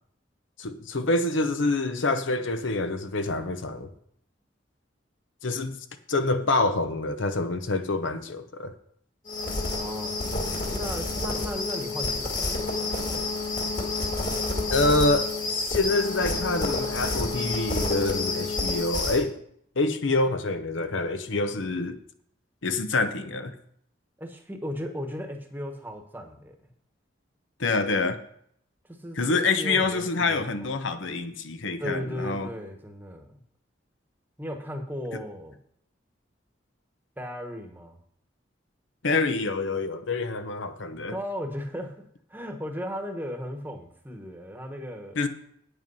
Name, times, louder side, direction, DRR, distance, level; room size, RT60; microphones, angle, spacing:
voice 1, 0.6-3.9 5.4-5.8 6.1-8.7 14.7-19.4 19.8-22.0 22.6-23.5 27.6-28.2 29.1-32.5 35.1-35.2 39.0-41.2 45.1-45.3, left 3 dB, 80° left, 0.9 m, -26 dB
sound 1, 9.3-19.2, left 3 dB, 45° left, 2.1 m, -29 dB
voice 2, 9.7-10.1 10.7-13.2 24.2-26.7 28.9-30.7 31.8-33.4 34.4-35.6 37.2-38.0 41.1-45.2, equal, 10° right, 1.1 m, -36 dB
9.1 x 8.0 x 5.5 m
head